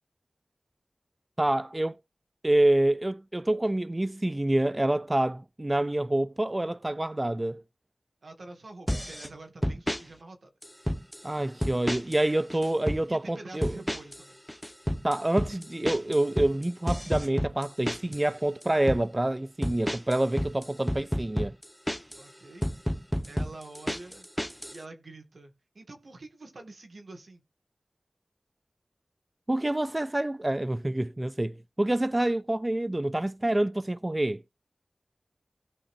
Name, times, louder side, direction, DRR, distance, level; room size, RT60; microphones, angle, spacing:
voice 1, 1.4-2.0 2.4-7.6 11.2-13.7 15.0-21.5 29.5-34.4, right 1 dB, 25° right, 0.4 m, -27 dB
voice 2, 8.2-10.5 13.0-14.4 22.2-22.7 23.2-24.3 24.7-27.4, right 2 dB, 75° right, 2.2 m, -47 dB
sound 1, 8.9-9.3 9.6-10.0 10.6-11.2 11.6-12.2 12.5-13.0 13.6-14.2 14.5-18.2 18.6-19.0 19.6-22.2 22.6-24.8, equal, 5° left, 0.9 m, -30 dB
16.5 x 5.5 x 2.7 m
wide cardioid pair, 60°, 0 cm